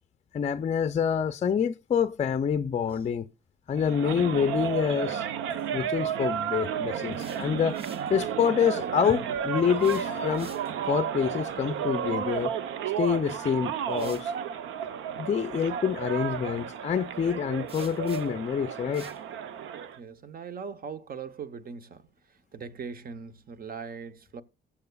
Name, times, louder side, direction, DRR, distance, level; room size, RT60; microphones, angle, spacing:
voice 1, 0.3-3.3 3.7-5.2 5.7-7.8 8.1-10.5 10.9-12.5 13.0-14.3 15.2-19.1, left 7 dB, 35° left, 0.4 m, -27 dB
Crying sobbing, 2.9-3.0 5.5-5.7 7.3-7.4 7.9-8.0 8.2-8.3 9.3-10.4 11.4-11.7 12.3-12.4, right 2 dB, 10° right, 2.7 m, -40 dB
sound 1, 3.8-20.0, right 8 dB, 85° right, 0.7 m, -32 dB
sound 2, 7.1-8.1 9.7-10.9 13.0-13.1 13.9-14.3 17.7-18.5 18.9-19.2, right 2 dB, 30° right, 1.4 m, -50 dB
voice 2, 19.9-24.4, right 6 dB, 50° right, 0.9 m, -40 dB
20.0 x 7.1 x 2.3 m
cardioid pair, 90°, 20 cm